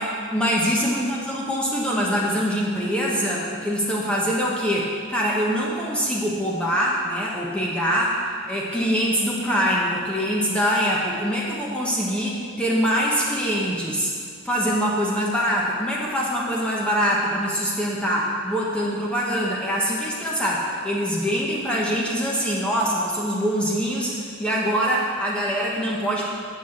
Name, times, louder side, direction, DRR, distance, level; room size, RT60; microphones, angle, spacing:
voice 1, 0.0-14.1 14.4-26.2, equal, 5° left, -4 dB, 1.1 m, -24 dB
7.7 x 6.3 x 7.9 m, 2.1 s
head